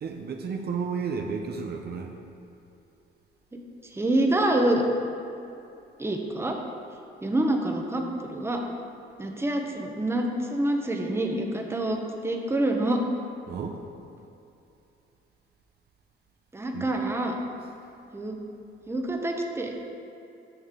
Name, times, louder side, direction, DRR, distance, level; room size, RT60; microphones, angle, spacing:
voice 1, 0.0-2.2 13.5-13.8 16.7-16.9, right 5 dB, 55° right, 3 dB, 0.7 m, -32 dB
voice 2, 3.9-4.8 6.0-6.5 7.2-8.0 8.3-8.6 9.2-13.0 16.5-17.4 18.1-18.4 18.9-19.8, right 1 dB, 10° right, 2 dB, 0.9 m, -26 dB
9.7 x 6.4 x 3.7 m, 2.7 s
cardioid pair, 90°, 20 cm